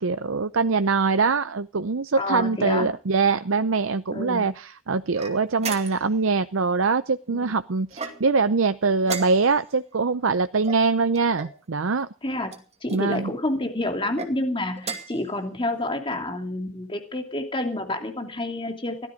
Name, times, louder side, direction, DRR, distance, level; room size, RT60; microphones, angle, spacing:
voice 1, 0.0-12.1 12.9-13.3, right 4 dB, 75° right, 0.7 m, -23 dB
voice 2, 2.1-2.9 4.1-4.5 7.3-7.4 12.2-19.1, left 1 dB, 25° left, 2.7 m, -29 dB
sound 1, 5.1-6.2 7.9-8.5 9.0-9.7 10.6-11.6 12.5-13.0 14.0-14.3 14.8-15.2, right 5 dB, 30° right, 2.4 m, -35 dB
17.5 x 13.5 x 5.1 m
head